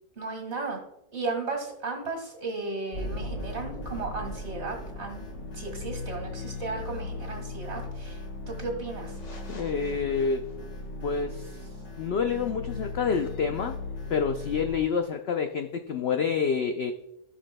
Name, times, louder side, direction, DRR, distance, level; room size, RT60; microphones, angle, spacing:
voice 1, 0.2-0.8 1.1-5.3 5.5-9.2, right 3 dB, 45° right, 3 dB, 2.1 m, -35 dB
sound 1, 2.9-14.8, left 2 dB, 50° left, 1.9 m, -37 dB
voice 2, 9.5-10.4 11.0-11.6 12.0-13.8 14.1-16.9, left 6 dB, 70° left, 6 dB, 0.6 m, -28 dB
16.5 x 6.1 x 2.2 m, 0.82 s
omnidirectional pair, 1.7 m